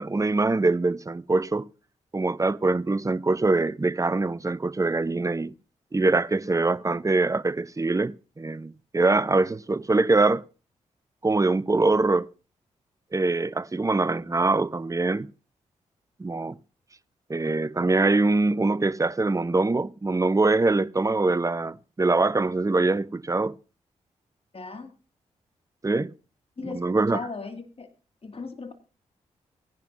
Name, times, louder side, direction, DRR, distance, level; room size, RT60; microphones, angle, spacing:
voice 1, 0.0-1.7 2.1-5.5 5.9-10.4 11.2-12.3 13.1-15.3 16.2-16.5 17.3-23.6 25.8-26.1 26.6-27.2, right 3 dB, 25° right, 0.8 m, -23 dB
voice 2, 24.5-24.9 26.6-26.8 27.1-27.9 28.2-28.7, left 4 dB, 45° left, 2.3 m, -37 dB
18.5 x 10.5 x 2.7 m
supercardioid pair, 40°, 14 cm